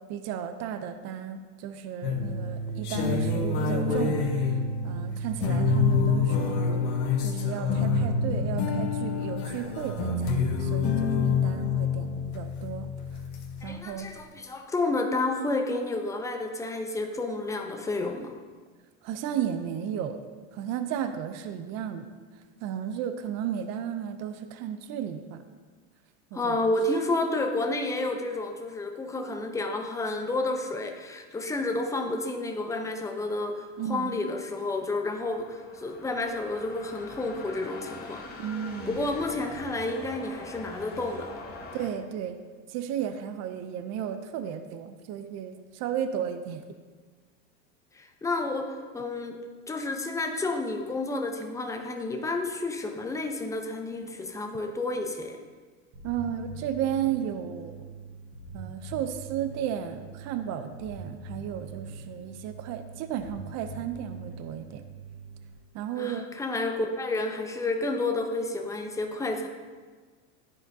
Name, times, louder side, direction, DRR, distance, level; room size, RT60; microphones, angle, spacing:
voice 1, 0.1-4.3 4.8-6.8 7.2-12.9 13.6-14.1 19.0-20.2 20.5-22.1 22.6-25.4 26.3-26.5 33.8-34.2 38.4-39.1 41.7-42.4 42.7-46.6 56.0-57.9 58.5-64.8 65.7-66.3, right 9 dB, 45° right, 9 dB, 0.5 m, -34 dB
sound 1, 2.0-13.7, left 4 dB, 60° left, 1.4 m, -27 dB
voice 2, 13.6-18.3 26.3-38.2 38.9-41.3 47.9-49.4 49.7-55.4 66.0-69.5, left 2 dB, 10° left, 4 dB, 0.6 m, -30 dB
sound 2, 34.1-41.9, left 3 dB, 25° left, 1.4 m, -43 dB
Bass guitar, 55.9-65.5, right 4 dB, 65° right, 2.0 m, -43 dB
12.5 x 4.3 x 2.7 m, 1.5 s
supercardioid pair, 125°, 39 cm